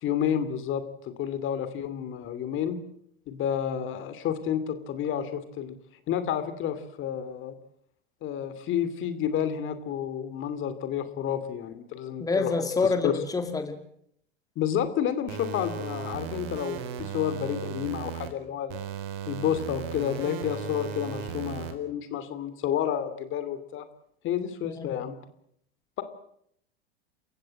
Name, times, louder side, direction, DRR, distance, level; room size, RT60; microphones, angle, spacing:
voice 1, 0.0-2.8 3.3-5.7 6.1-7.5 8.2-12.6 13.0-13.1 14.6-18.8 19.3-23.8 24.2-25.1, left 9 dB, 40° left, 12 dB, 2.7 m, -30 dB
voice 2, 12.2-13.8 24.6-24.9, left 3 dB, 10° left, 8 dB, 2.3 m, -27 dB
sound 1, 15.3-18.3 18.7-21.7, right 7 dB, 55° right, 3.9 m, -36 dB
28.5 x 15.5 x 7.7 m, 0.69 s
hypercardioid pair, 100°, 31 cm